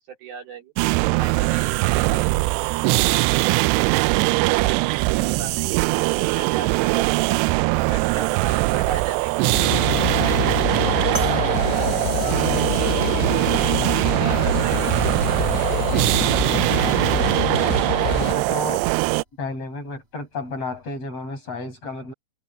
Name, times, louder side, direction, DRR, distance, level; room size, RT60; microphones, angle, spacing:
voice 1, 0.1-0.7 1.2-3.9 4.5-7.4 7.8-12.7 13.0-17.2, right 6 dB, 60° right, 4.7 m, -37 dB
sound 1, 0.8-19.2, right 22 dB, 85° right, 2.6 m, -21 dB
sound 2, 9.5-18.3, left 15 dB, 85° left, 2.9 m, -27 dB
sound 3, 11.1-15.9 16.7-16.8 19.0-19.1, equal, 15° right, 7.1 m, -38 dB
voice 2, 18.3-18.9 19.4-22.1, left 2 dB, 35° left, 7.6 m, -31 dB
omnidirectional pair, 5.0 m